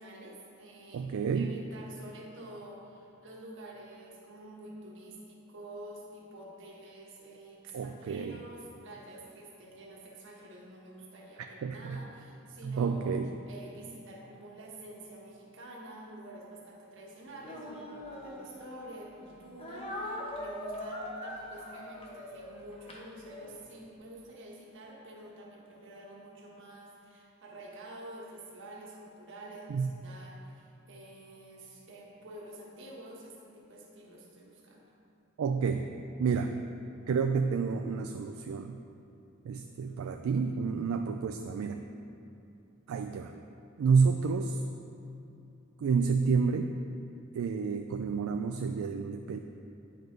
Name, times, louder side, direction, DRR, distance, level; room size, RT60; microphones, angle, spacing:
voice 1, 0.0-34.8 39.6-40.1, right 1 dB, 60° right, -2 dB, 1.3 m, -48 dB
voice 2, 0.9-1.5 7.7-8.4 11.6-12.0 12.6-13.3 29.7-29.9 35.4-35.9 36.2-36.5 37.1-38.8 39.4-41.8 42.9-43.3 43.8-44.6 45.8-46.7 47.3-49.4, right 5 dB, 75° right, 6 dB, 0.3 m, -29 dB
Speech, 17.4-19.0 19.6-23.6, left 1 dB, 30° left, 1.0 m, -42 dB
9.2 x 5.4 x 3.9 m, 2.7 s
head